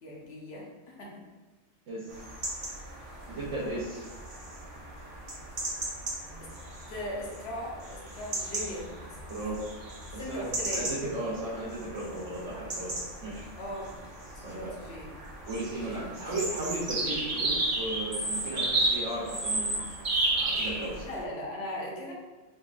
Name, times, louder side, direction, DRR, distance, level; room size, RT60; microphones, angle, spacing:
voice 1, 0.0-1.2 6.9-8.9 10.2-10.9 13.6-13.9 14.5-15.1 21.0-22.1, left 1 dB, 60° left, -3 dB, 1.1 m, -38 dB
voice 2, 1.9-2.2 3.3-4.0 9.3-9.6 10.1-10.4 10.7-12.9 13.2-13.5 14.4-14.7 15.5-19.8 20.3-21.0, right 2 dB, 75° right, -8 dB, 1.3 m, -35 dB
sound 1, 2.1-21.2, right 2 dB, 45° right, 1.0 m, -34 dB
4.1 x 3.5 x 2.5 m, 1.3 s
omnidirectional pair, 1.3 m